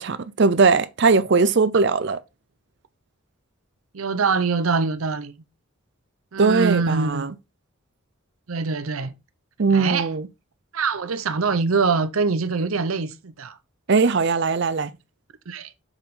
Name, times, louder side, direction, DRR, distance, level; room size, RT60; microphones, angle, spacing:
voice 1, 0.0-2.2 6.4-7.3 9.6-10.3 13.9-14.9, right 4 dB, 55° right, 0.6 m, -19 dB
voice 2, 3.9-5.3 6.3-7.3 8.5-9.1 9.7-10.1 10.7-13.6 15.5-15.7, right 4 dB, 85° right, 0.7 m, -24 dB
7.3 x 5.3 x 3.8 m
head